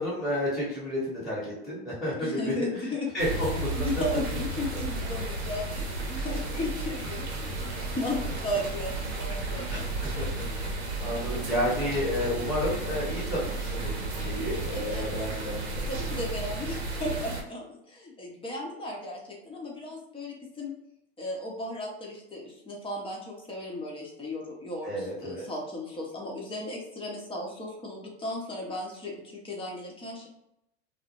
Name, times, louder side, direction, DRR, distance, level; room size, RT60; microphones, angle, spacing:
voice 1, 0.0-2.7 3.1-3.9 4.7-4.8 9.7-9.8 10.2-15.8 24.8-25.4, left 1 dB, ahead, -10 dB, 1.0 m, -31 dB
voice 2, 2.2-3.1 3.5-9.8 14.7-15.0 15.9-20.7 21.2-30.3, left 1 dB, 15° left, -1 dB, 0.7 m, -35 dB
sound 1, 3.2-17.4, right 2 dB, 75° right, 0.6 m, -33 dB
2.3 x 2.0 x 2.9 m, 0.82 s
hypercardioid pair, 95°, 33 cm